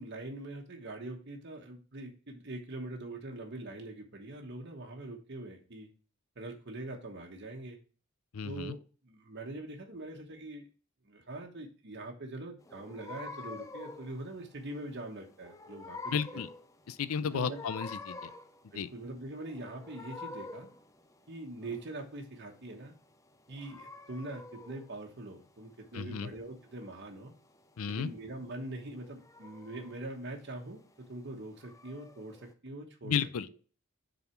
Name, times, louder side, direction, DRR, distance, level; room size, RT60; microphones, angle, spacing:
voice 1, 0.0-5.9 6.4-7.8 8.4-8.8 9.0-10.7 11.0-16.4 17.2-17.6 18.7-20.7 21.3-22.9 23.5-27.3 27.8-30.8 31.1-33.2, right 2 dB, 50° right, 1.2 m, -43 dB
voice 2, 8.3-8.7 16.1-16.5 16.9-18.3 18.8-18.9 25.9-26.3 27.8-28.1 33.0-33.5, left 7 dB, 85° left, 0.5 m, -33 dB
sound 1, 12.6-32.5, left 3 dB, 15° left, 0.5 m, -49 dB
6.8 x 4.1 x 4.4 m
head